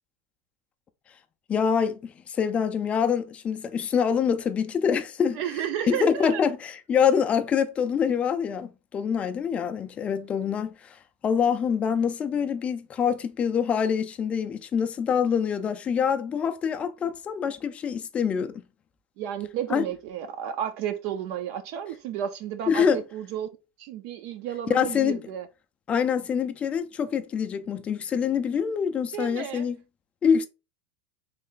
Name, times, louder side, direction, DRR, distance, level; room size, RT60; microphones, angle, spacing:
voice 1, 1.5-5.4 5.9-18.6 19.7-19.9 22.7-23.0 24.7-25.2 25.9-29.8 30.2-30.5, left 7 dB, 20° left, 0.3 m, -25 dB
voice 2, 5.4-6.4 19.2-23.5 23.8-25.5 29.1-29.7, right 10 dB, 50° right, 0.4 m, -32 dB
3.2 x 2.4 x 3.7 m
supercardioid pair, 160°, 6 cm